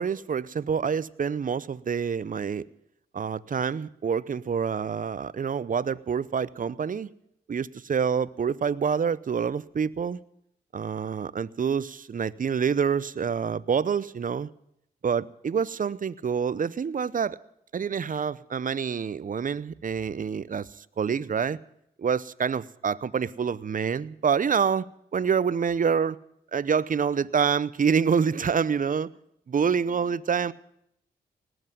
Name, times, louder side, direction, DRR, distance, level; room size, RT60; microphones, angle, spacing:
voice 1, 0.0-2.7 3.1-7.1 7.5-10.2 10.7-14.5 15.0-17.4 17.7-21.6 22.0-26.2 26.5-29.1 29.5-30.5, right 6 dB, 40° right, 19 dB, 0.7 m, -27 dB
19.0 x 8.0 x 9.2 m, 0.76 s
supercardioid pair, 50°, 20 cm